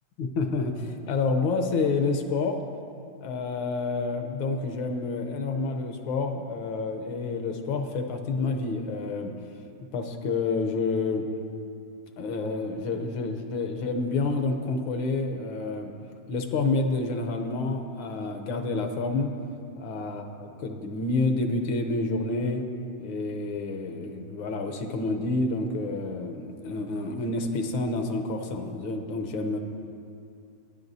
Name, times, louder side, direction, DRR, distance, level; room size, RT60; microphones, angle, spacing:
voice 1, 0.2-2.6 3.2-9.3 9.9-11.3 12.2-15.9 16.3-19.3 19.8-22.6 23.0-29.6, left 3 dB, 70° left, 5 dB, 1.5 m, -29 dB
17.0 x 10.5 x 2.7 m, 2.5 s
omnidirectional pair, 2.3 m